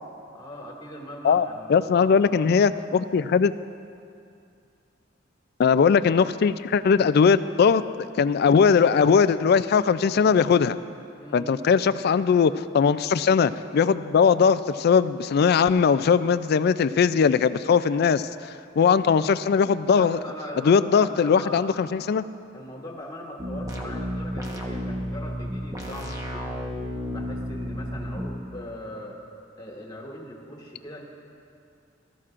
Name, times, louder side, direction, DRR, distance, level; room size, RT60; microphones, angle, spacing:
voice 1, 0.3-2.4 11.2-11.6 19.9-21.7 22.5-26.5 27.1-29.2 29.6-31.0, left 1 dB, 20° left, -1 dB, 1.7 m, -40 dB
voice 2, 1.2-3.5 5.6-7.8 8.2-10.8 11.3-18.2 18.8-20.2 20.7-22.2, left 6 dB, 55° left, 14 dB, 0.3 m, -20 dB
sound 1, 23.4-28.2, equal, 20° right, 1.1 m, -32 dB
19.0 x 13.5 x 2.5 m, 2.5 s
head